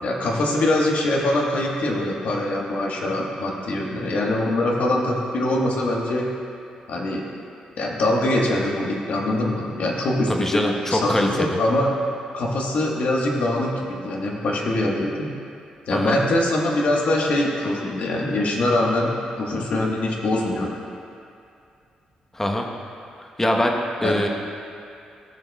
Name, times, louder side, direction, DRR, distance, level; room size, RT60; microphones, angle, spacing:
voice 1, 0.0-6.3 6.9-7.2 7.8-11.9 12.3-15.3 15.9-20.7 24.0-24.2, left 1 dB, 70° left, -1 dB, 1.4 m, -23 dB
voice 2, 10.3-11.6 15.9-16.2 22.3-22.7 23.4-24.3, left 1 dB, 15° left, 1 dB, 1.1 m, -23 dB
15.5 x 6.9 x 2.3 m, 2.5 s
supercardioid pair, 60°, 3 cm